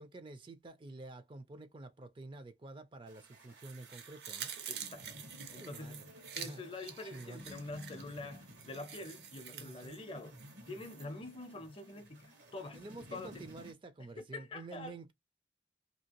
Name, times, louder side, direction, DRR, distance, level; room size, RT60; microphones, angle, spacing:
voice 1, 0.0-4.5 5.5-6.0 6.4-6.6 7.1-7.4 9.5-10.0 12.8-15.1, right 2 dB, 30° right, 0.4 m, -49 dB
sound 1, 3.1-13.7, equal, 85° right, 1.3 m, -55 dB
sound 2, 3.6-11.1 11.4-11.5, right 8 dB, 65° right, 0.7 m, -48 dB
voice 2, 4.7-10.4 10.7-12.8 13.1-13.5 14.2-15.0, left 2 dB, 30° left, 0.6 m, -46 dB
2.8 x 2.8 x 2.8 m
head